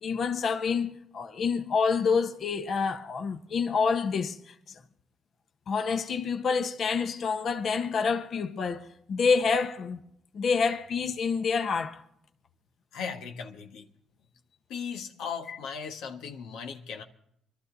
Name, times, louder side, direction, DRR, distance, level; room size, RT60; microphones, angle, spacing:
voice 1, 0.0-4.7 5.7-10.0 10.3-12.0 15.5-15.6, left 5 dB, 55° left, 1.3 m, -28 dB
voice 2, 12.9-13.9 14.7-17.0, left 6 dB, 90° left, 1.6 m, -37 dB
25.0 x 12.5 x 4.1 m
cardioid pair, 90°, 0 cm